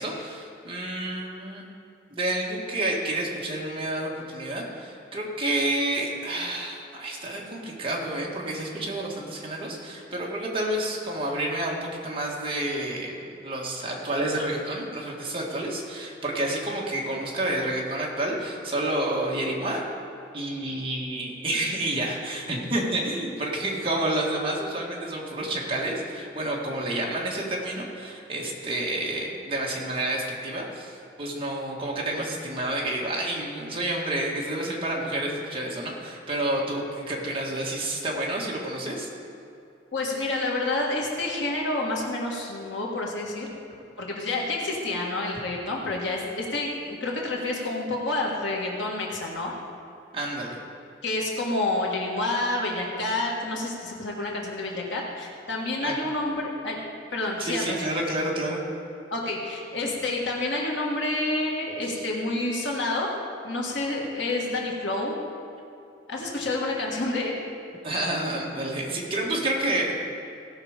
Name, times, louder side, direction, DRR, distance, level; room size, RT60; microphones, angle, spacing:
voice 1, 0.0-1.6 2.1-19.8 20.3-39.1 50.1-50.6 55.8-55.9 57.4-58.6 61.8-62.0 67.8-70.0, right 1 dB, 30° right, -3 dB, 1.8 m, -29 dB
voice 2, 39.9-43.5 44.0-49.5 51.0-56.8 57.1-57.8 59.1-63.1 63.4-65.1 66.1-67.4, left 2 dB, 70° left, -2 dB, 1.7 m, -28 dB
17.0 x 5.9 x 5.1 m, 2.7 s
head